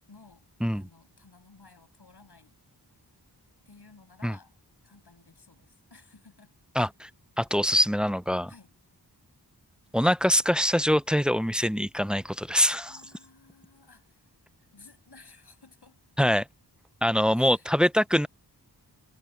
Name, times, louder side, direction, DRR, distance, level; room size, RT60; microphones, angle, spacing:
voice 1, 0.1-2.6 3.6-4.5 4.8-6.6 7.8-7.9 8.5-8.7 12.6-14.3 14.6-16.0 17.3-17.7, left 3 dB, 70° left, 6.9 m, -55 dB
voice 2, 6.8-7.1 7.4-8.5 9.9-13.0 16.2-16.5 17.0-18.3, equal, ahead, 0.4 m, -24 dB
wide cardioid pair, 60°, 42 cm